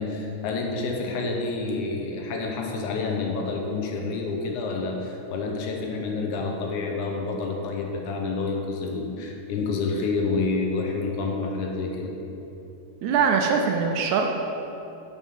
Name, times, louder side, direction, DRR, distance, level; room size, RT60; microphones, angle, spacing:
voice 1, 0.0-12.1, left 3 dB, 80° left, 1 dB, 2.2 m, -28 dB
voice 2, 13.0-14.3, right 6 dB, 80° right, 3 dB, 1.8 m, -22 dB
7.3 x 6.1 x 5.3 m, 2.9 s
omnidirectional pair, 3.6 m